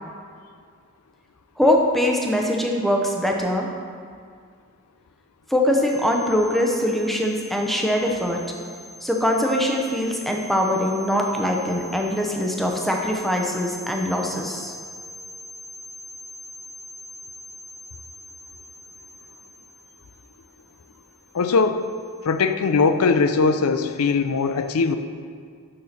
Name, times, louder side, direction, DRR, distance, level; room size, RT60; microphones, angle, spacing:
voice 1, 1.6-3.7 5.5-8.4 9.0-14.7, left 1 dB, ahead, 0 dB, 0.7 m, -22 dB
voice 2, 21.3-21.8 22.2-25.0, left 4 dB, 85° left, 9 dB, 0.5 m, -20 dB
6.5 x 5.6 x 5.8 m, 2.1 s
head